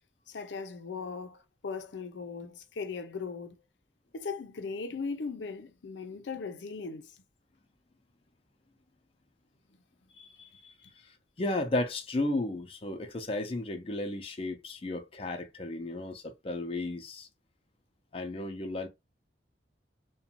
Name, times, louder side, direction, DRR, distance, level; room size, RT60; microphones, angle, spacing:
voice 1, 0.3-3.6 4.1-7.2, left 4 dB, 90° left, 0.5 m, -38 dB
voice 2, 10.2-10.7 11.4-17.3 18.1-18.9, left 2 dB, 35° left, 0.5 m, -34 dB
2.5 x 2.2 x 2.8 m
head